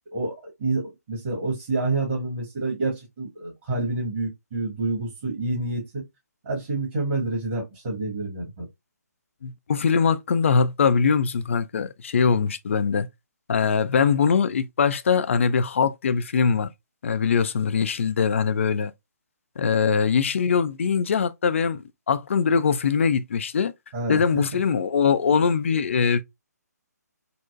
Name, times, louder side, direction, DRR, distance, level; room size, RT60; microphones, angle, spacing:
voice 1, 0.1-6.0 6.4-8.7 23.9-24.2, right 2 dB, 35° right, 1.4 m, -28 dB
voice 2, 9.4-13.1 13.5-16.7 17.0-18.9 19.6-23.7 24.1-26.2, left 6 dB, 45° left, 0.4 m, -22 dB
3.9 x 2.1 x 2.3 m
figure-of-eight pair, 140°, 9 cm